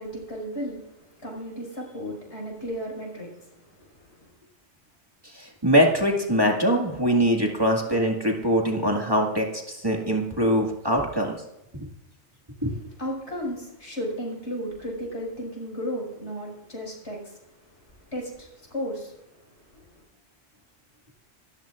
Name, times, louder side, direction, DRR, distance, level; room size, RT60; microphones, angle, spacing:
voice 1, 0.0-4.3 12.6-12.7 13.0-19.2 19.7-19.9, equal, 80° left, -2 dB, 6.2 m, -35 dB
voice 2, 5.3-11.4 11.7-11.9 12.6-12.7, equal, 20° right, 0 dB, 2.0 m, -23 dB
27.5 x 13.5 x 2.5 m, 0.88 s
omnidirectional pair, 1.1 m